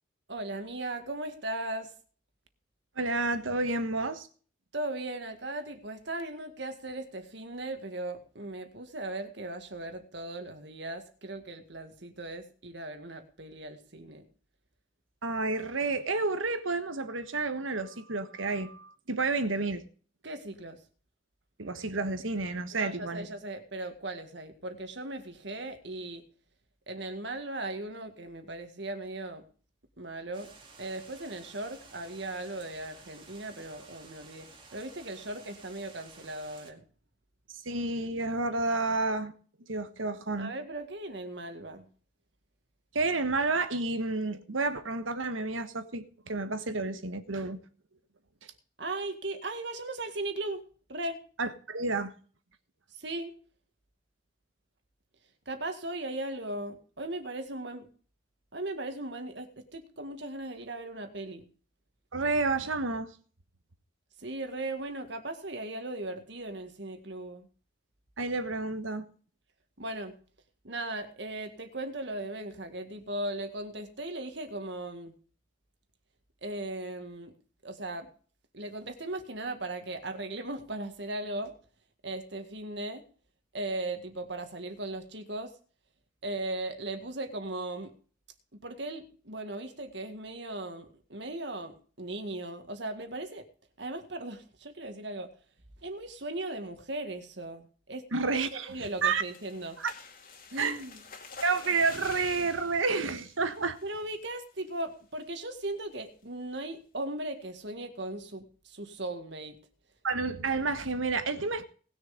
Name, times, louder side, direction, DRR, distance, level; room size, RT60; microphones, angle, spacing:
voice 1, 0.3-1.9 4.7-14.2 20.2-20.8 22.7-26.2 26.9-29.4 30.0-30.5 30.8-36.8 40.4-41.9 48.8-50.6 50.9-51.2 52.9-53.3 55.5-57.9 58.5-61.5 64.2-67.5 69.8-70.1 70.6-75.1 76.4-77.3 77.6-78.1 78.5-81.5 82.0-83.0 83.5-85.5 86.2-87.9 88.5-93.5 93.8-95.3 95.8-98.0 98.5-99.8 100.5-101.0 103.8-109.6, right 2 dB, 60° right, 1.9 m, -38 dB
voice 2, 3.0-4.3 15.2-19.8 21.6-23.3 37.6-39.3 39.7-40.5 42.9-47.6 51.4-52.1 62.1-63.1 68.2-69.1 98.1-99.2 99.8-99.9 100.6-100.8 101.4-103.8 110.0-111.6, right 3 dB, 85° right, 1.4 m, -30 dB
sound 1, 30.3-36.7, right 4 dB, 25° right, 2.2 m, -53 dB
sound 2, 98.4-104.2 104.6-104.9 105.2-105.3 105.6-105.9, left 4 dB, 45° left, 2.3 m, -49 dB
19.0 x 6.8 x 5.2 m
head